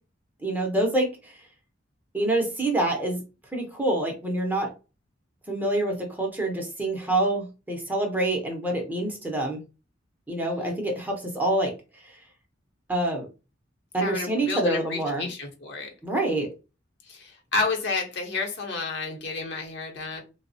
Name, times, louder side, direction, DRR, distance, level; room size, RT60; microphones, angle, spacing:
voice 1, 0.4-1.3 2.1-3.2 3.5-4.7 5.5-9.6 10.3-11.7 12.0-12.2 12.9-13.3 13.9-15.3 16.0-16.5, right 1 dB, 10° right, 1 dB, 0.6 m, -26 dB
voice 2, 10.4-10.8 14.0-15.9 17.1-20.2, left 3 dB, 60° left, 1 dB, 0.8 m, -31 dB
3.3 x 2.0 x 2.6 m, 0.30 s
head